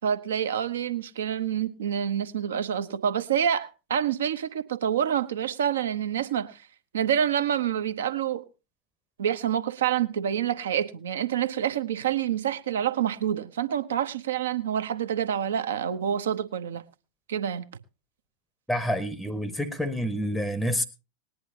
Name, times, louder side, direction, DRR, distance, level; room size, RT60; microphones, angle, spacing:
voice 1, 0.0-6.6 6.9-8.4 9.2-16.8 17.3-17.6, right 9 dB, 65° right, 0.8 m, -27 dB
voice 2, 18.7-20.8, equal, ahead, 0.8 m, -28 dB
19.5 x 10.5 x 2.8 m
figure-of-eight pair, 90°, 0 cm